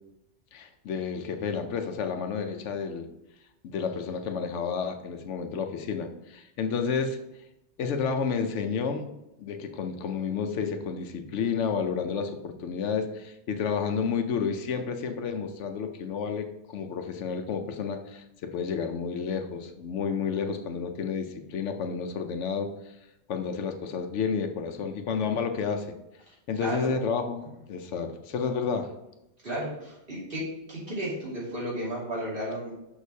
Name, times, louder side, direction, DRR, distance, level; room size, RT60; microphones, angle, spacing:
voice 1, 0.5-3.1 3.6-7.2 7.8-9.1 9.4-22.9 23.3-25.9 26.5-27.4 27.7-28.9, left 6 dB, 90° left, 7 dB, 1.0 m, -30 dB
voice 2, 26.6-26.9 29.4-30.4 30.7-32.7, equal, 50° right, -7 dB, 2.6 m, -33 dB
6.3 x 5.9 x 2.7 m, 0.91 s
omnidirectional pair, 1.2 m